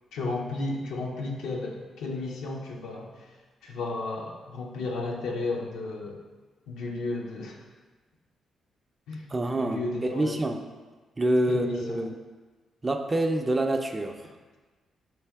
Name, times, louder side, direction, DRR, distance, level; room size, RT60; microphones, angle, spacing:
voice 1, 0.1-3.3 3.6-6.2 6.7-7.6 9.1-9.3 9.6-10.3 11.5-12.0, left 3 dB, 80° left, -1 dB, 0.5 m, -33 dB
voice 2, 9.3-10.6 11.2-12.2 12.8-14.3, right 1 dB, 30° right, 5 dB, 0.4 m, -27 dB
3.2 x 2.7 x 3.4 m, 1.3 s
hypercardioid pair, 50°, 0 cm